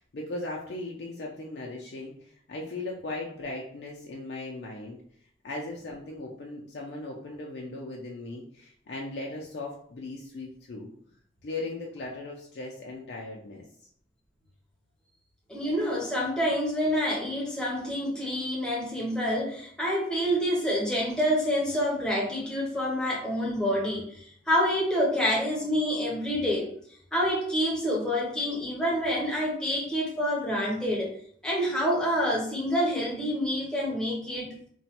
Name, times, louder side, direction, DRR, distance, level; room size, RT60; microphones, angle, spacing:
voice 1, 0.0-5.0 5.4-10.9 11.4-13.6, left 2 dB, 65° left, -1 dB, 0.4 m, -38 dB
voice 2, 15.5-26.7 27.1-31.1 31.4-34.7, equal, 5° left, -4 dB, 0.6 m, -27 dB
3.0 x 2.2 x 2.8 m, 0.62 s
head